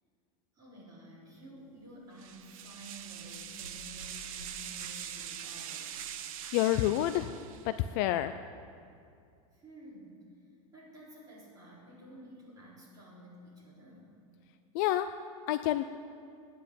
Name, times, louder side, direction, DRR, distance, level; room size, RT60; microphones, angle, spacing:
voice 1, 0.5-6.0 9.5-10.2 10.7-14.1, equal, 20° right, -7 dB, 4.5 m, -51 dB
sound 1, 2.2-7.8, right 9 dB, 70° right, 1.0 m, -43 dB
voice 2, 6.5-7.3 7.6-8.4 14.7-15.1 15.5-15.8, left 13 dB, 35° left, 10 dB, 0.4 m, -28 dB
15.5 x 10.0 x 8.3 m, 2.4 s
supercardioid pair, 180°, 18 cm